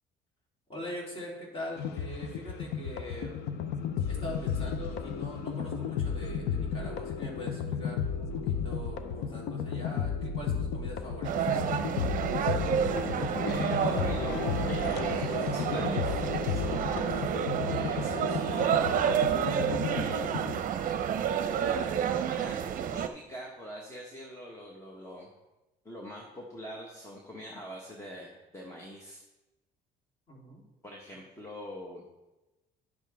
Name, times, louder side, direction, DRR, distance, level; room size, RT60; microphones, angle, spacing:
voice 1, 0.7-3.3 4.1-12.0 30.3-30.6, left 1 dB, 35° left, -3 dB, 3.3 m, -42 dB
sound 1, 1.8-20.6, left 6 dB, 80° left, 0.7 m, -33 dB
sound 2, 11.2-23.1, right 8 dB, 55° right, 0.6 m, -30 dB
voice 2, 13.4-17.2 17.6-20.4 20.9-21.0 21.5-22.6 22.9-25.3 25.8-29.2 30.8-32.0, equal, 15° left, -2 dB, 1.3 m, -43 dB
10.5 x 7.2 x 3.5 m, 1.0 s
cardioid pair, 110°, 17 cm